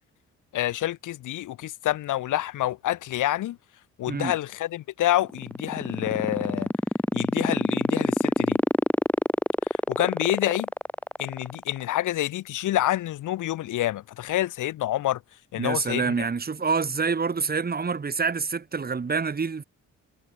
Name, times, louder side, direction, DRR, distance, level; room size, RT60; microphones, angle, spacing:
voice 1, 0.5-3.6 4.0-6.7 7.1-8.6 9.9-10.7 11.2-15.2 15.5-16.3, left 14 dB, 85° left, 4.6 m, -27 dB
sound 1, 5.2-11.8, left 1 dB, 5° left, 2.2 m, -24 dB
voice 2, 15.6-19.6, right 5 dB, 30° right, 2.9 m, -27 dB
cardioid pair, 90°, 30 cm